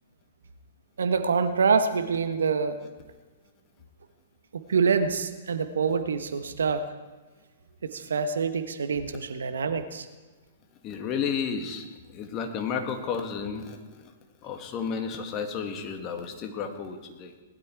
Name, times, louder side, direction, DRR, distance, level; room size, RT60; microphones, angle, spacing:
voice 1, 1.0-2.8 4.5-6.9 7.8-10.1, right 5 dB, 75° right, 9 dB, 1.3 m, -26 dB
voice 2, 10.8-14.1 14.4-17.3, left 6 dB, 35° left, 5 dB, 2.0 m, -32 dB
19.5 x 12.0 x 4.7 m, 1.3 s
figure-of-eight pair, 115°, 0 cm